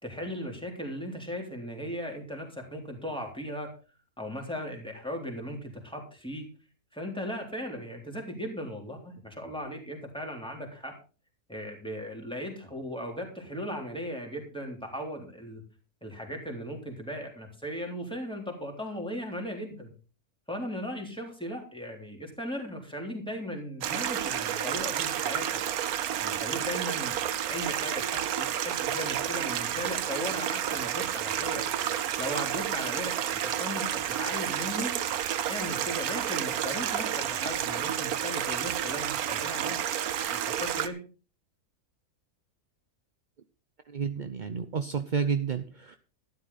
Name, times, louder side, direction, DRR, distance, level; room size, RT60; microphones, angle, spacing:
voice 1, 0.0-3.7 4.2-6.5 6.9-10.9 11.5-15.6 16.0-19.9 20.5-25.6 26.2-27.2 27.5-31.7 32.2-34.9 35.5-39.8 40.3-41.0, equal, 5° left, 1 dB, 3.5 m, -37 dB
Stream, 23.8-40.9, right 10 dB, 75° right, 1.3 m, -30 dB
voice 2, 43.9-46.0, right 6 dB, 45° right, 9 dB, 0.6 m, -30 dB
13.0 x 11.5 x 4.1 m, 0.35 s
omnidirectional pair, 1.6 m